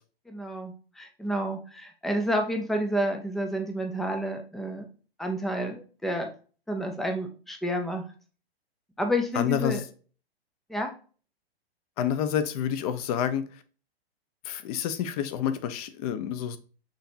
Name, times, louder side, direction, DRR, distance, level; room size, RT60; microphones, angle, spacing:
voice 1, 0.3-4.9 5.2-6.3 6.7-8.0 9.0-9.8 10.7-10.9, equal, ahead, 0.3 m, -30 dB
voice 2, 9.4-9.8 12.0-13.4 14.5-16.6, left 9 dB, 40° left, 0.6 m, -28 dB
6.3 x 2.8 x 2.5 m
hypercardioid pair, 125°, 31 cm